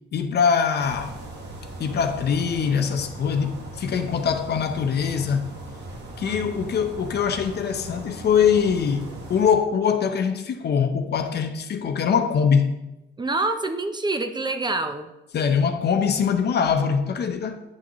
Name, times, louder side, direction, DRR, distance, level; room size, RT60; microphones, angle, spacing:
voice 1, 0.1-1.2 1.8-5.5 6.2-12.8 15.3-17.6, left 6 dB, 55° left, 0.8 m, -23 dB
sound 1, 0.8-9.5, right 2 dB, 60° right, 1.6 m, -39 dB
voice 2, 6.2-6.7 13.2-15.1, right 2 dB, 20° right, 0.6 m, -27 dB
10.0 x 6.0 x 3.0 m
cardioid pair, 90°, 20 cm